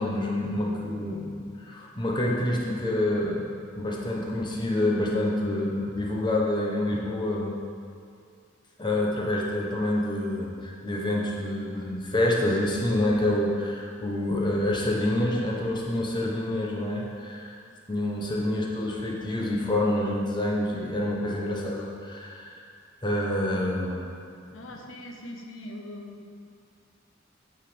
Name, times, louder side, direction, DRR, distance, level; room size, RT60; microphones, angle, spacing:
voice 1, 0.0-7.6 8.8-17.6 17.9-22.6 23.0-24.0, left 1 dB, 25° left, -2 dB, 1.0 m, -27 dB
voice 2, 24.5-26.3, left 1 dB, 80° left, 2 dB, 0.9 m, -41 dB
9.0 x 5.7 x 5.0 m, 2.3 s
head